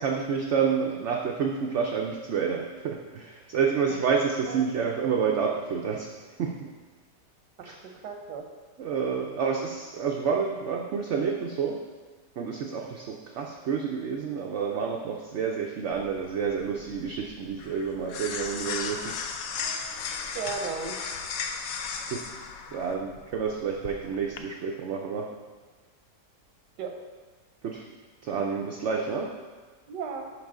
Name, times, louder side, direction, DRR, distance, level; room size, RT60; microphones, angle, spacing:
voice 1, 0.0-6.1 6.4-6.7 7.6-7.8 8.8-11.8 12.4-19.2 22.1-22.4 22.7-25.3 27.6-27.8 28.2-29.3, right 6 dB, 65° right, 0 dB, 0.7 m, -29 dB
voice 2, 7.8-8.4 20.3-21.0 26.8-26.9 29.9-30.3, right 5 dB, 85° right, 4 dB, 1.5 m, -34 dB
sound 1, 15.9-24.4, left 5 dB, 65° left, 0.9 m, -36 dB
11.0 x 4.0 x 3.7 m, 1.4 s
omnidirectional pair, 1.8 m